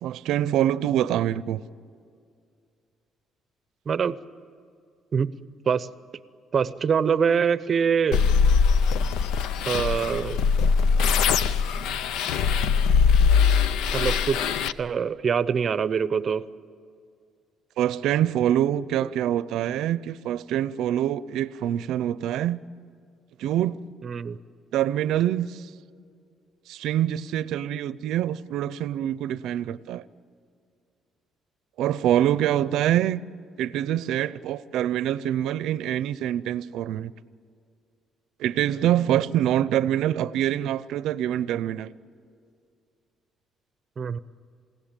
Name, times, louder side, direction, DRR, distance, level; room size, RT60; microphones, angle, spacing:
voice 1, 0.0-1.6 17.8-22.6 23.4-23.8 24.7-25.7 26.7-30.0 31.8-33.2 33.6-37.1 38.4-41.9, right 11 dB, 75° right, 0.6 m, -25 dB
voice 2, 3.9-4.2 5.1-5.3 5.7-5.9 6.5-8.2 9.7-10.4 13.9-14.4 14.8-16.5 24.0-24.4 44.0-44.2, right 6 dB, 35° right, 0.6 m, -24 dB
sound 1, 8.1-14.7, left 6 dB, 90° left, 0.7 m, -21 dB
28.5 x 16.5 x 9.0 m
cardioid pair, 135°, 0 cm